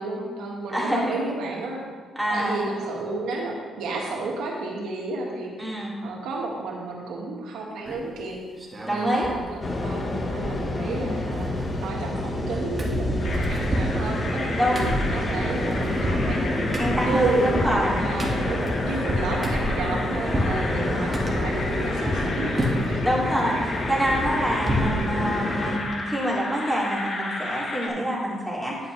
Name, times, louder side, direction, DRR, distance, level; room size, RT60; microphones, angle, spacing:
voice 1, 0.0-1.8 2.3-8.4 8.9-9.4 9.8-16.4 17.1-17.6 18.0-23.0, right 3 dB, 90° right, -1 dB, 1.8 m, -31 dB
voice 2, 0.7-1.3 2.2-2.6 5.6-6.0 8.8-9.3 14.6-14.9 16.8-18.0 23.0-28.8, equal, ahead, -5 dB, 2.7 m, -26 dB
sound 1, 7.8-8.2 8.6-9.4 9.7-9.8 10.0-10.9 11.1-12.5 12.8-20.6 21.1-22.3 22.6-23.0 23.4-25.0 25.3-25.4 25.7-25.9, equal, 25° right, 1.8 m, -30 dB
sound 2, 9.6-25.8, left 1 dB, 35° left, 1.3 m, -28 dB
sound 3, 13.2-27.9, left 2 dB, 55° left, 1.9 m, -34 dB
10.0 x 8.7 x 3.3 m, 1.5 s
cardioid pair, 100°, 0 cm